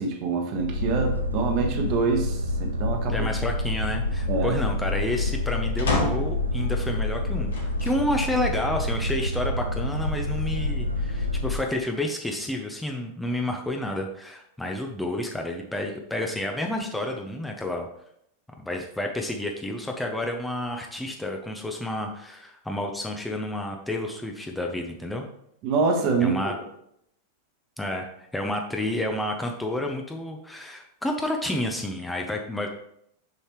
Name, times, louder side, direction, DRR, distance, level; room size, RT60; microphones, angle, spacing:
voice 1, 0.0-3.3 4.3-4.6 25.6-26.5, right 4 dB, 40° right, 4 dB, 1.2 m, -25 dB
Boat Water vehicle, 0.5-11.6, left 1 dB, 85° right, 0.6 m, -28 dB
voice 2, 3.1-17.9 18.6-25.3 26.2-26.6 27.8-32.7, left 1 dB, 5° left, 2 dB, 0.7 m, -30 dB
sound 1, 5.8-6.4 7.5-8.1 8.7-8.8 10.0-10.8, left 2 dB, 65° left, 1.8 m, -29 dB
6.7 x 5.6 x 3.1 m, 0.74 s
figure-of-eight pair, 90°, 0 cm